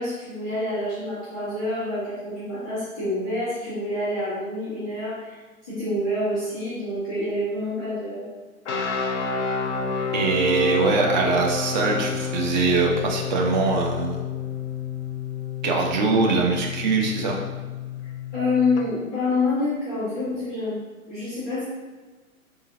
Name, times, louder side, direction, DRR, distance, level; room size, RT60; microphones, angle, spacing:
voice 1, 0.0-8.2 18.3-20.8 21.1-21.6, left 2 dB, 5° left, -21 dB, 0.3 m, -27 dB
sound 1, 8.6-18.8, left 6 dB, 55° left, 0.7 m, -30 dB
voice 2, 10.1-14.2 15.6-17.4, right 4 dB, 35° right, 0 dB, 0.7 m, -22 dB
4.5 x 3.7 x 2.7 m, 1.3 s
figure-of-eight pair, 115°, 42 cm